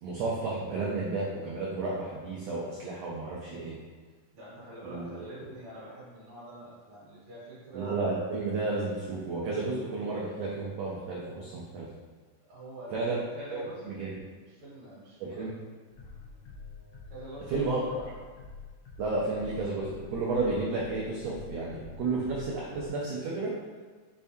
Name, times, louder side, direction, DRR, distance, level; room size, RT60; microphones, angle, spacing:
voice 1, 0.0-3.8 4.8-5.3 7.7-11.9 12.9-13.2 13.5-14.2 15.2-15.5 17.5-17.8 19.0-23.5, right 3 dB, 85° right, -6 dB, 1.4 m, -32 dB
voice 2, 4.3-7.9 12.5-13.8 14.5-15.5 17.1-18.1, right 1 dB, 60° right, -8 dB, 2.3 m, -46 dB
sound 1, 15.9-22.9, left 4 dB, 75° left, 1.4 m, -47 dB
5.3 x 3.5 x 2.7 m, 1.5 s
omnidirectional pair, 3.9 m